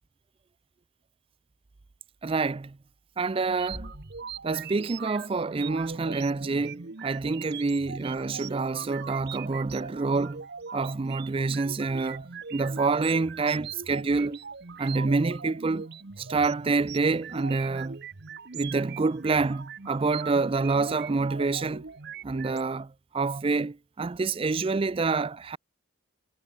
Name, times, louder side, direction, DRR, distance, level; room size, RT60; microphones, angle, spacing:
voice 1, 2.2-2.8 3.2-3.9 4.4-10.4 10.7-14.4 14.8-15.9 16.2-18.0 18.5-21.8 22.2-25.6, right 3 dB, 25° right, 0.4 m, -27 dB
sound 1, 3.4-22.6, right 6 dB, 50° right, 1.0 m, -41 dB
Bass drum, 3.7-5.4, equal, 5° left, 0.9 m, -47 dB
head